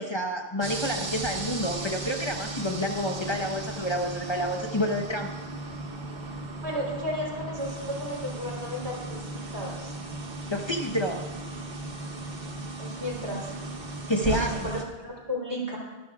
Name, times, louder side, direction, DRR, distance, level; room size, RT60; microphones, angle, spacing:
voice 1, 0.0-5.3 10.5-11.3 14.1-14.7, equal, 25° left, 3 dB, 1.0 m, -29 dB
sound 1, 0.6-14.8, right 2 dB, 55° right, 1.3 m, -36 dB
voice 2, 6.6-9.2 9.5-9.9 12.8-13.5 14.2-15.8, equal, 80° right, -2 dB, 4.0 m, -34 dB
25.0 x 13.0 x 2.4 m, 1.3 s
omnidirectional pair, 1.1 m